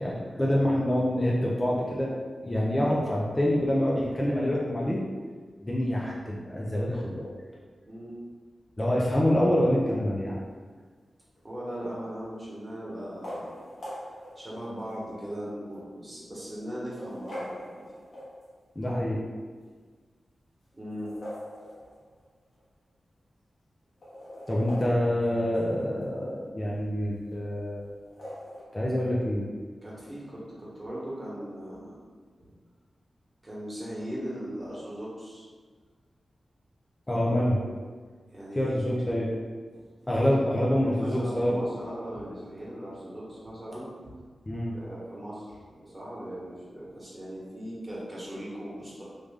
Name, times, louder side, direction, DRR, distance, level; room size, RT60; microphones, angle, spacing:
voice 1, 0.0-2.1 2.4-5.0 5.6-7.3 8.8-10.4 18.8-19.2 24.5-28.0 28.7-29.5 37.1-37.6 38.5-39.3 40.1-41.7 44.5-44.7, left 1 dB, 20° left, -5 dB, 0.5 m, -26 dB
voice 2, 7.8-8.2 11.4-13.5 14.4-17.8 20.7-21.1 29.8-32.0 32.4-32.5 33.4-35.4 38.3-39.1 39.7-43.9 44.7-49.0, equal, 25° right, -7 dB, 1.3 m, -39 dB
sound 1, 11.4-11.8 13.0-15.1 15.7-15.8 16.7-18.7 20.8-22.3 22.6-22.7 22.9-23.0 23.8-26.1 28.0-28.6, left 1 dB, 70° left, 1.3 m, -42 dB
3.2 x 2.5 x 3.6 m, 1.5 s
wide cardioid pair, 70°, 0 cm